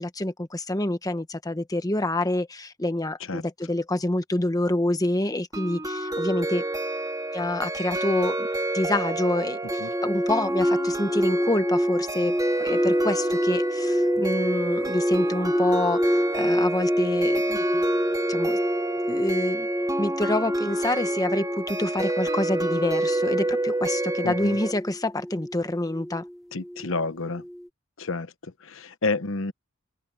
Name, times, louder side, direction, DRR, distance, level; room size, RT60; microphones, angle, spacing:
voice 1, 0.0-6.6 7.3-8.5 8.7-17.8 18.3-18.6 19.1-19.7 20.0-26.2, left 1 dB, 15° left, 1.1 m, -27 dB
sound 1, 5.5-24.7, right 2 dB, 15° right, 2.4 m, -29 dB
sound 2, 9.7-27.0 27.3-27.7, equal, ahead, 0.3 m, -27 dB
voice 2, 24.2-24.6 26.5-27.4 28.0-29.5, left 3 dB, 65° left, 1.1 m, -30 dB
head